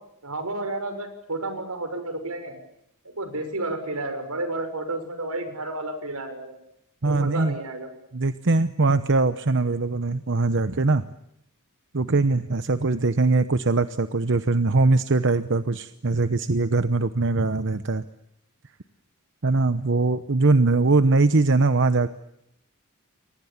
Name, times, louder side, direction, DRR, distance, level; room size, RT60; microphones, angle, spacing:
voice 1, 0.2-2.6 3.2-6.6 7.0-7.9, right 2 dB, 85° right, 9 dB, 6.2 m, -31 dB
voice 2, 7.0-7.6 8.1-11.1 11.9-18.0 19.4-22.1, right 3 dB, 55° right, 11 dB, 0.9 m, -21 dB
29.5 x 23.5 x 7.3 m, 0.79 s
head